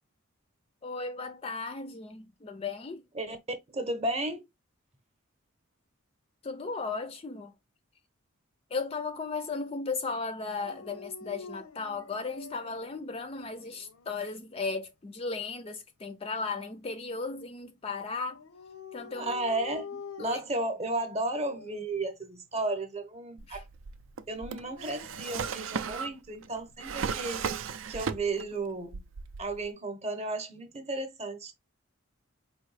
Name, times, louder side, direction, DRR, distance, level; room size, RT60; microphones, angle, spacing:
voice 1, 0.8-3.0 6.4-7.5 8.7-18.4 18.9-19.4 20.2-20.4 23.5-23.6, left 4 dB, 25° left, 0.4 m, -36 dB
voice 2, 3.7-4.4 19.1-19.9 20.2-23.6 24.3-27.5 27.9-29.0 29.4-31.5, right 2 dB, 30° right, 0.8 m, -33 dB
Dog, 10.6-12.8 13.4-14.2 18.3-20.6 21.4-21.8 24.4-25.7, left 5 dB, 80° left, 0.6 m, -46 dB
Drawer open or close, 23.4-28.6 28.9-29.7, right 6 dB, 65° right, 0.4 m, -36 dB
4.4 x 2.7 x 3.2 m
head